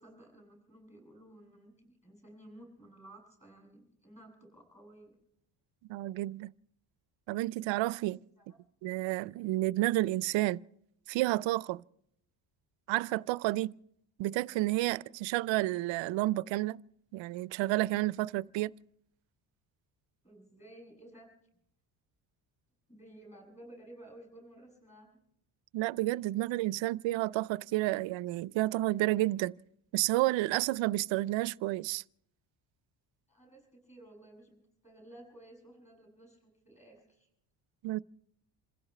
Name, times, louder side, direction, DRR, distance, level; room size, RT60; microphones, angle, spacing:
voice 1, 0.0-5.2 8.4-8.6 20.2-21.3 22.9-25.1 33.3-37.3, right 1 dB, 15° left, 7.5 m, -54 dB
voice 2, 5.9-6.5 7.3-8.2 8.8-10.6 11.1-11.8 12.9-13.7 14.2-16.8 17.1-18.7 25.7-29.5 29.9-32.0 37.8-38.0, right 17 dB, 85° right, 0.5 m, -30 dB
27.0 x 16.0 x 3.2 m
cardioid pair, 175°, 44 cm